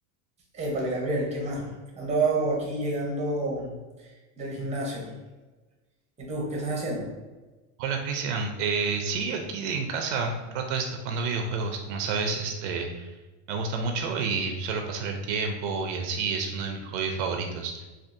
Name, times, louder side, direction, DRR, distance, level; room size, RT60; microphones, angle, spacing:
voice 1, 0.5-5.1 6.2-7.1, right 2 dB, 20° right, -2 dB, 0.7 m, -29 dB
voice 2, 7.8-13.1 13.5-17.9, right 4 dB, 75° right, 3 dB, 0.5 m, -29 dB
3.5 x 2.4 x 2.5 m, 1.2 s
supercardioid pair, 145°, 37 cm